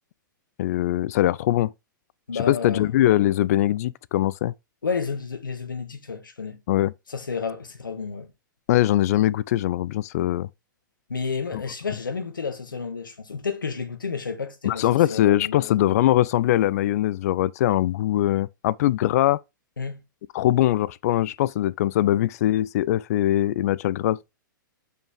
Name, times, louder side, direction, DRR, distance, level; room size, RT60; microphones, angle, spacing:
voice 1, 0.6-1.7 2.5-4.5 6.7-6.9 8.7-10.5 14.6-19.4 20.3-24.2, left 13 dB, 50° left, 0.4 m, -22 dB
voice 2, 2.3-2.9 4.8-6.6 7.1-8.3 11.1-15.6 19.8-20.0, left 5 dB, 75° left, 1.6 m, -31 dB
6.6 x 5.5 x 3.6 m
figure-of-eight pair, 105°, 11 cm